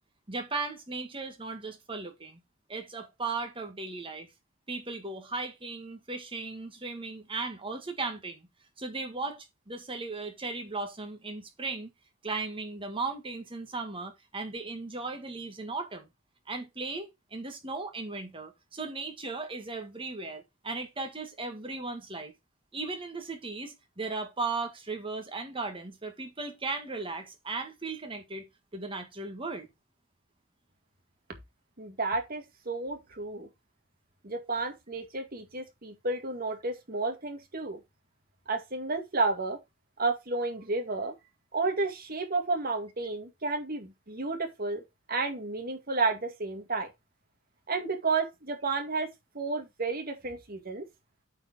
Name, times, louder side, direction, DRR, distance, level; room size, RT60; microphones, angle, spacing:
voice 1, 0.3-2.4 2.7-4.3 4.7-8.4 8.8-11.9 12.2-16.1 16.5-22.3 22.7-28.4 28.7-29.7, right 3 dB, 25° right, 2.0 m, -36 dB
voice 2, 31.8-33.5 34.2-37.8 38.5-39.6 40.0-41.1 41.5-44.8 45.1-46.9 47.7-50.9, right 3 dB, 50° right, 2.1 m, -31 dB
8.6 x 4.7 x 4.3 m
head